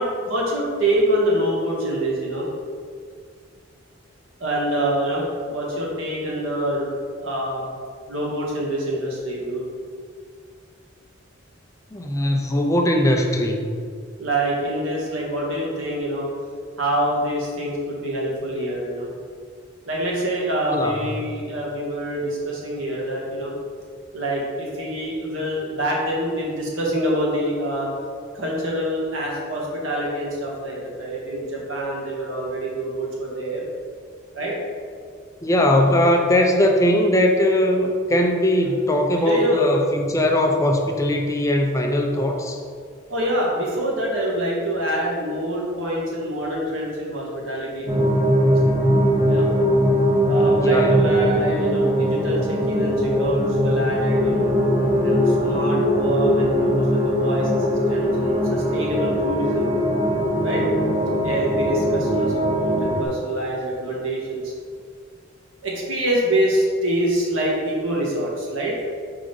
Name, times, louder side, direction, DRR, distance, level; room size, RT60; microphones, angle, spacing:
voice 1, 0.0-2.5 4.4-6.9 7.2-7.7 8.1-9.6 14.2-16.3 16.8-19.1 19.9-23.5 24.1-27.9 28.3-33.6 34.3-34.6 39.1-39.7 43.1-48.0 49.3-49.5 50.3-54.5 55.0-59.7 60.4-60.6 61.2-64.5 65.6-68.7, right 1 dB, 90° right, -3 dB, 1.5 m, -25 dB
voice 2, 11.9-13.7 20.7-20.9 35.4-42.6 50.6-51.1, left 1 dB, 15° left, 2 dB, 0.4 m, -20 dB
sound 1, 47.9-63.1, equal, 25° right, 0.9 m, -20 dB
4.8 x 3.8 x 5.2 m, 2.1 s
head